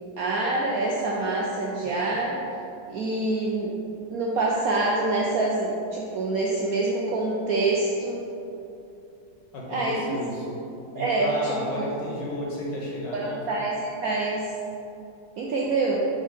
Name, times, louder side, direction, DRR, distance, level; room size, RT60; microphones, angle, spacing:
voice 1, 0.2-2.4 2.9-3.7 4.1-8.2 9.7-10.2 10.9-11.9 13.1-13.8 14.0-14.4 15.4-16.0, right 2 dB, 70° right, -3 dB, 0.8 m, -26 dB
voice 2, 9.5-10.6 10.9-13.4, left 1 dB, 65° left, -3 dB, 1.8 m, -33 dB
6.3 x 3.8 x 5.2 m, 2.7 s
omnidirectional pair, 2.1 m